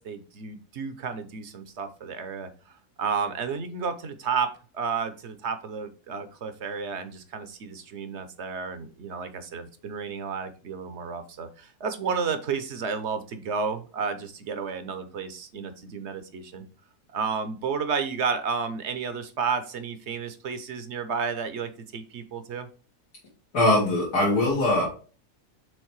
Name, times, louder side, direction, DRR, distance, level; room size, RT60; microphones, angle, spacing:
voice 1, 0.0-2.5 3.0-4.5 4.7-16.7 17.1-22.7, right 5 dB, 55° right, 10 dB, 0.9 m, -32 dB
voice 2, 23.5-24.8, left 1 dB, 85° left, -6 dB, 2.7 m, -21 dB
6.4 x 3.5 x 4.6 m, 0.37 s
omnidirectional pair, 1.6 m